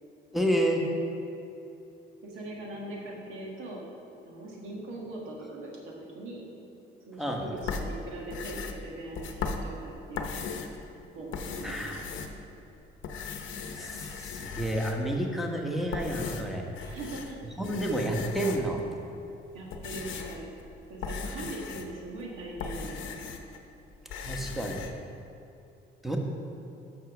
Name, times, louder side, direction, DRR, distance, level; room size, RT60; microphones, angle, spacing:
voice 1, 0.3-0.8 7.2-7.4 11.6-12.0 13.7-16.6 17.6-18.8 24.2-24.9 26.0-26.2, right 1 dB, ahead, 1 dB, 1.1 m, -30 dB
voice 2, 2.2-3.8 4.2-6.4 7.1-10.6 11.1-12.3 16.8-17.4 19.5-20.5 20.9-23.2, right 2 dB, 90° right, -2 dB, 1.6 m, -41 dB
sound 1, 7.6-10.8 11.2-12.7 13.0-15.2 15.7-17.4 17.6-18.8 19.4-23.6 23.9-24.9, left 5 dB, 75° left, 0.7 m, -37 dB
6.2 x 5.9 x 6.0 m, 2.8 s
cardioid pair, 90°, 20 cm